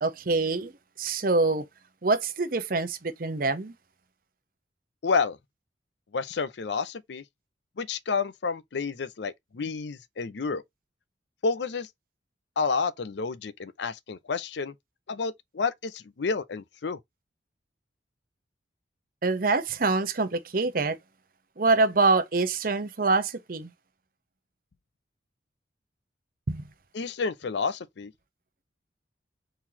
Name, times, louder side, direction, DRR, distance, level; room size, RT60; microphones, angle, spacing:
voice 1, 0.0-0.7 1.0-1.6 2.0-3.7 19.2-21.0 21.6-23.7 26.5-26.6, right 3 dB, 50° right, 0.8 m, -25 dB
voice 2, 5.0-5.4 6.1-7.2 7.8-10.6 11.4-11.9 12.6-14.7 15.1-17.0 26.9-28.1, left 4 dB, 70° left, 0.5 m, -30 dB
4.4 x 3.9 x 2.8 m
head